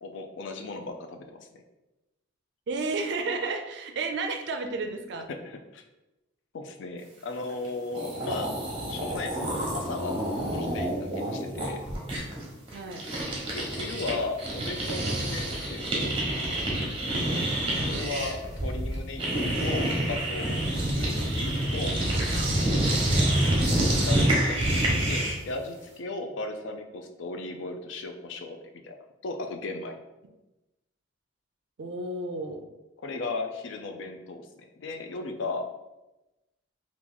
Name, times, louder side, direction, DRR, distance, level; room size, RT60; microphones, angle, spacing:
voice 1, 0.0-1.6 5.4-5.8 6.5-8.5 8.9-11.8 13.5-16.6 17.7-19.3 19.6-22.0 24.0-28.6 28.8-29.0 29.2-30.0 33.0-35.7, left 3 dB, 70° left, 5 dB, 0.4 m, -36 dB
voice 2, 2.7-5.3 12.7-13.0 17.9-18.3 23.2-23.6 31.8-32.7, right 3 dB, 60° right, 6 dB, 0.4 m, -32 dB
sound 1, 7.6-7.7 7.9-14.1 14.4-25.5, right 1 dB, 30° right, 0.9 m, -27 dB
2.9 x 2.5 x 3.8 m, 1.0 s
head